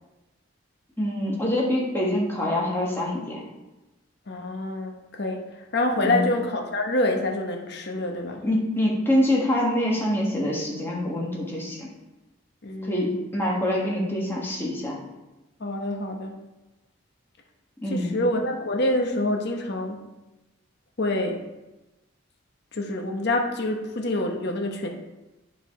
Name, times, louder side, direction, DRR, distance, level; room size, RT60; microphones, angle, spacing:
voice 1, 1.0-3.4 6.0-6.2 8.4-11.9 12.8-15.0 17.8-18.2, left 1 dB, 10° left, -4 dB, 1.5 m, -25 dB
voice 2, 4.3-5.4 5.7-8.4 12.6-13.2 15.6-16.3 17.9-20.0 21.0-21.4 22.7-24.9, left 1 dB, 55° left, 2 dB, 0.9 m, -26 dB
9.1 x 4.9 x 3.6 m, 1.0 s
head